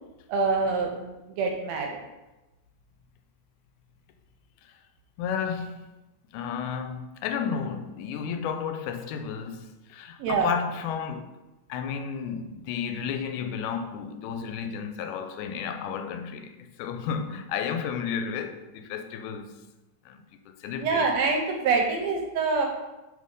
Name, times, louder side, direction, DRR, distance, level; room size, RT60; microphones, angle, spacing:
voice 1, 0.3-2.0 10.2-10.5 20.8-22.7, right 4 dB, 75° right, 1.7 m, -25 dB
voice 2, 5.2-5.9 6.3-11.3 11.7-16.5 16.8-19.6 20.1-21.1, left 7 dB, 90° left, 2.1 m, -32 dB
5.3 x 4.0 x 5.2 m
omnidirectional pair, 3.4 m